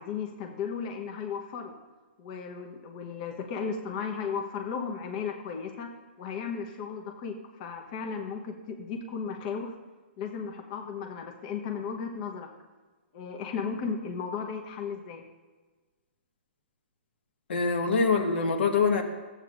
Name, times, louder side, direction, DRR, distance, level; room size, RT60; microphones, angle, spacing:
voice 1, 0.0-1.7 2.2-5.9 6.2-9.8 10.2-12.5 13.1-15.2, left 6 dB, 45° left, 3 dB, 1.0 m, -35 dB
voice 2, 17.5-19.0, left 4 dB, 70° left, 3 dB, 1.4 m, -24 dB
14.0 x 8.2 x 2.6 m, 1.3 s
hypercardioid pair, 130°, 6 cm